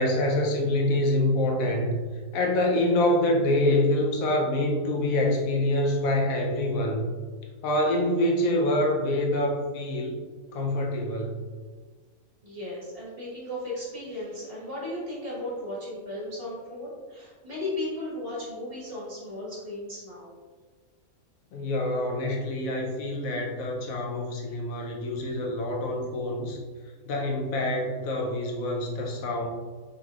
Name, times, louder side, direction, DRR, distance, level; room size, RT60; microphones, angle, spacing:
voice 1, 0.0-2.0 2.3-7.1 7.6-10.2 10.5-11.4 21.5-26.6 27.1-29.5, left 1 dB, 75° left, 0 dB, 1.1 m, -26 dB
voice 2, 12.4-20.3, left 1 dB, 40° right, -7 dB, 1.7 m, -35 dB
4.3 x 3.9 x 2.4 m, 1.4 s
omnidirectional pair, 1.5 m